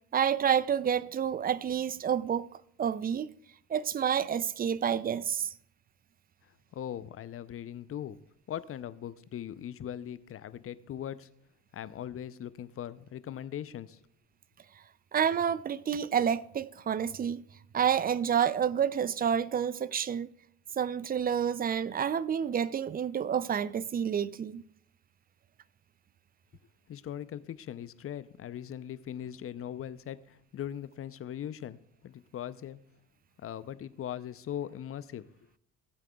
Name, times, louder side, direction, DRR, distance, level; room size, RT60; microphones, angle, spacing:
voice 1, 0.1-2.5 2.8-3.3 3.7-5.5 15.1-17.4 17.7-20.3 20.8-24.6, right 8 dB, 25° right, 0.4 m, -29 dB
voice 2, 6.7-8.2 8.5-11.3 11.7-14.0 26.9-32.8 33.4-35.5, left 10 dB, 35° left, 0.6 m, -40 dB
16.5 x 8.3 x 2.3 m
hypercardioid pair, 60°, 37 cm